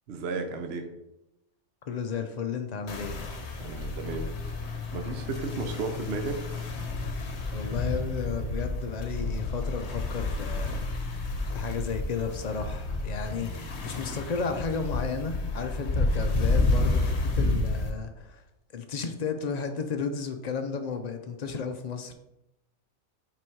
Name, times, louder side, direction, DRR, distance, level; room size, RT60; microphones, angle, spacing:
voice 1, 0.1-0.9 3.6-6.4, right 4 dB, 55° right, 5 dB, 0.9 m, -34 dB
voice 2, 1.9-3.3 7.5-10.9 11.5-18.4 18.7-22.1, left 5 dB, 75° left, 6 dB, 0.3 m, -33 dB
sound 1, 2.9-17.9, left 2 dB, 55° left, 1.2 m, -30 dB
6.1 x 4.0 x 4.6 m, 0.90 s
omnidirectional pair, 1.4 m